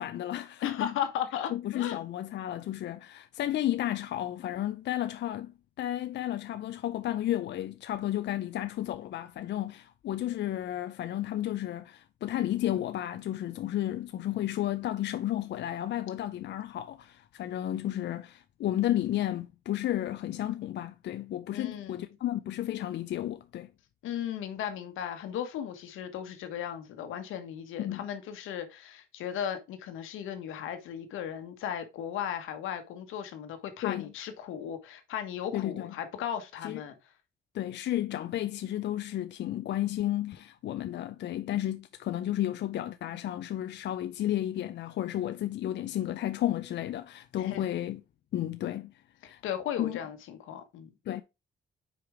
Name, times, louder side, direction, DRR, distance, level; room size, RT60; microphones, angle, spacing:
voice 1, 0.0-0.9 1.5-23.7 27.8-28.0 33.8-34.1 35.5-35.9 36.6-36.8 37.5-48.0 48.3-48.9 49.2-49.4 49.8-50.0 51.1-51.2, left 13 dB, 60° left, 0.5 m, -32 dB
voice 2, 0.6-2.0 21.5-22.1 24.0-36.9 47.4-47.6 49.2-50.9, left 9 dB, 90° left, 1.3 m, -36 dB
5.0 x 4.8 x 4.8 m
cardioid pair, 90°, 20 cm